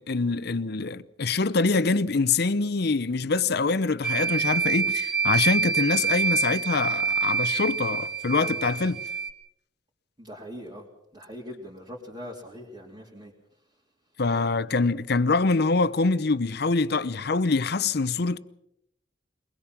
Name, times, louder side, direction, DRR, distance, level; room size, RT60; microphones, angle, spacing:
voice 1, 0.0-9.0 14.2-18.4, left 3 dB, 60° left, 0.8 m, -25 dB
sound 1, 4.0-9.3, right 5 dB, 5° right, 1.2 m, -26 dB
voice 2, 10.2-10.9 11.1-13.3, equal, 25° right, 2.9 m, -41 dB
22.5 x 21.0 x 6.0 m
head